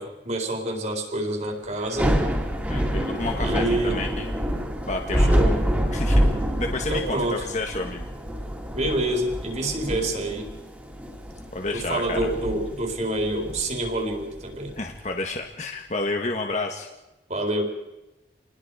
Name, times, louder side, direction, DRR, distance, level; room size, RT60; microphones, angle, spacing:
voice 1, 0.0-2.2 3.4-4.0 5.2-5.6 6.9-7.4 8.7-10.5 11.7-14.7 17.3-17.7, right 1 dB, 40° right, 2 dB, 4.3 m, -27 dB
Thunder / Rain, 1.8-15.0, equal, 10° right, 3.0 m, -27 dB
voice 2, 2.7-4.3 4.9-5.6 5.9-6.3 6.6-8.1 11.5-12.3 14.8-16.9, left 2 dB, 40° left, 3 dB, 1.7 m, -30 dB
28.0 x 20.5 x 5.1 m, 1.0 s
head